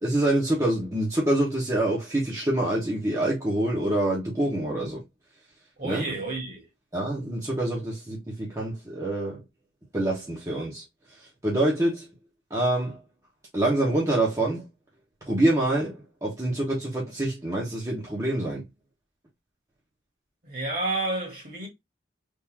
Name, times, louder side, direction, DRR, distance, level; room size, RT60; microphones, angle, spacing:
voice 1, 0.0-5.0 5.8-6.0 6.9-9.4 9.9-10.8 11.2-12.1 12.5-13.0 13.5-14.6 15.3-18.6, right 1 dB, 15° right, 1.1 m, -26 dB
voice 2, 5.8-6.6 20.4-21.7, right 2 dB, 50° right, 1.9 m, -30 dB
3.6 x 2.8 x 2.8 m
head